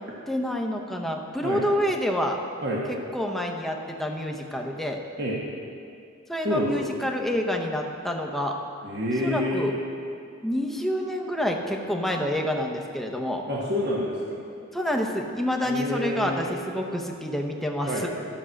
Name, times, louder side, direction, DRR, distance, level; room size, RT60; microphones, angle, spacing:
voice 1, 0.3-2.4 2.9-5.0 6.3-8.6 9.2-9.7 10.4-13.4 14.7-18.1, equal, ahead, 1 dB, 0.8 m, -28 dB
voice 2, 8.8-9.7 13.4-14.4 15.6-16.5 17.9-18.0, left 1 dB, 55° right, -4 dB, 1.3 m, -28 dB
12.5 x 6.2 x 6.4 m, 2.5 s
head